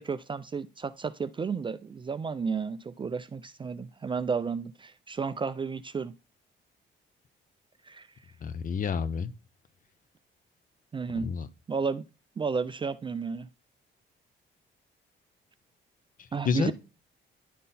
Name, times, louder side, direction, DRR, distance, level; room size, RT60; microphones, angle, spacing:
voice 1, 0.0-6.1 7.9-8.1 10.9-11.3 11.7-12.0 12.4-13.5 16.3-16.7, right 5 dB, 25° right, 0.3 m, -32 dB
voice 2, 8.4-9.3 11.1-11.5 16.4-16.7, left 6 dB, 45° left, 0.6 m, -29 dB
10.0 x 3.7 x 4.1 m
cardioid pair, 90°, 20 cm